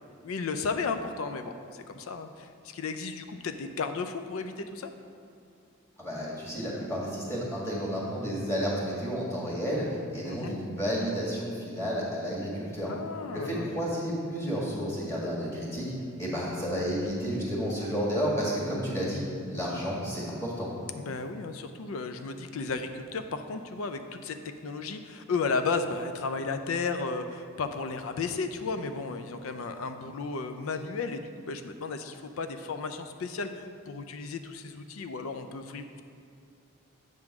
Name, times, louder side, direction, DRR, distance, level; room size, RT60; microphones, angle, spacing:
voice 1, 0.2-4.9 10.2-10.6 12.9-13.7 21.0-36.0, left 4 dB, 75° left, 8 dB, 0.4 m, -34 dB
voice 2, 6.0-9.8 10.1-12.9 13.3-15.9 16.2-20.7, equal, 15° left, -6 dB, 1.7 m, -31 dB
7.6 x 3.7 x 5.9 m, 2.5 s
head